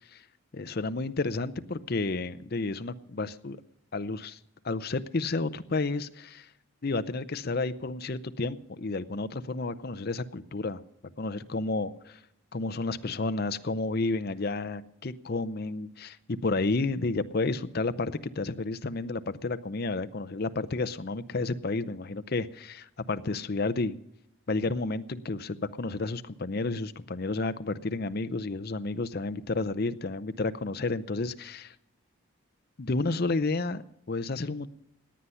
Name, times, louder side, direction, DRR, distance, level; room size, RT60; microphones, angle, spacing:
voice 1, 0.5-3.6 3.9-4.4 4.6-6.5 6.8-10.8 11.2-12.2 12.5-24.0 24.5-31.7 32.8-34.7, left 3 dB, 45° left, 12 dB, 0.6 m, -31 dB
17.5 x 9.7 x 5.6 m, 0.79 s
head